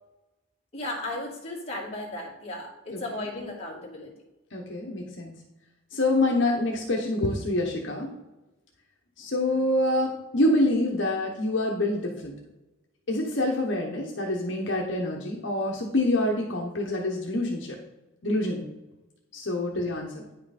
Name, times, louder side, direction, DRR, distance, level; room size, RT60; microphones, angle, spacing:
voice 1, 0.7-4.1, left 1 dB, 30° left, -4 dB, 2.3 m, -35 dB
voice 2, 4.5-5.3 5.9-8.1 9.2-12.3 13.1-17.8 18.2-18.7 19.3-20.2, left 1 dB, 65° left, 0 dB, 1.1 m, -26 dB
9.7 x 5.8 x 4.2 m, 1.0 s
head